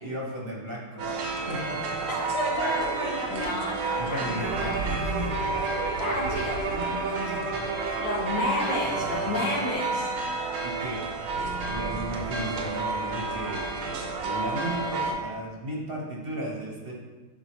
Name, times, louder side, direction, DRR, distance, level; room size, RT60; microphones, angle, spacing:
voice 1, 0.0-1.9 4.0-5.4 6.6-8.0 10.6-11.0 11.3-16.9, right 1 dB, 35° right, -2 dB, 1.0 m, -35 dB
sound 1, 1.0-15.1, right 3 dB, 85° right, 1.9 m, -31 dB
voice 2, 2.3-4.8 6.0-6.6 8.0-10.1, left 2 dB, 85° left, -6 dB, 1.9 m, -31 dB
Bowed string instrument, 4.4-9.8, right 4 dB, 70° right, 1.3 m, -34 dB
11.0 x 4.3 x 3.1 m, 1.3 s
omnidirectional pair, 2.3 m